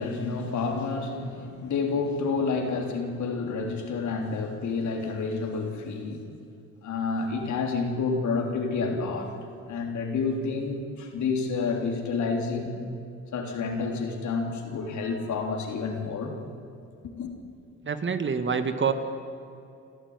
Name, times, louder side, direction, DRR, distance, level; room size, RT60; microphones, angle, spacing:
voice 1, 0.0-6.2 6.8-9.3 9.7-12.9 13.3-16.3 17.0-17.3, left 4 dB, 70° left, 3 dB, 3.6 m, -29 dB
voice 2, 17.8-18.9, right 6 dB, 40° right, 8 dB, 2.0 m, -26 dB
28.0 x 13.5 x 9.7 m, 2.6 s
cardioid pair, 90°, 30 cm